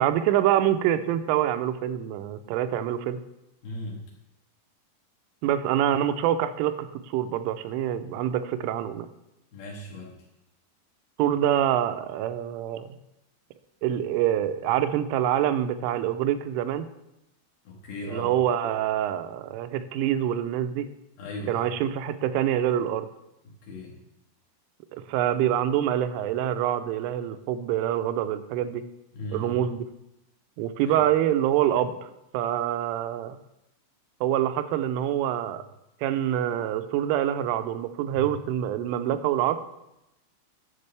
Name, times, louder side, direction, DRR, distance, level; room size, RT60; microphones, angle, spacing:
voice 1, 0.0-3.2 5.4-9.1 11.2-12.9 13.8-16.9 18.1-20.9 21.5-23.1 24.9-28.8 29.3-29.9 30.6-32.1 32.3-33.4 34.2-35.6 36.0-39.6, right 11 dB, 90° right, 10 dB, 3.1 m, -26 dB
voice 2, 3.6-4.0 9.5-10.2 17.6-18.3 21.2-21.7 23.4-24.0 29.1-29.6 30.8-31.0 38.2-38.3, left 1 dB, 60° left, -3 dB, 3.0 m, -37 dB
11.0 x 8.1 x 3.3 m, 0.88 s
omnidirectional pair, 5.5 m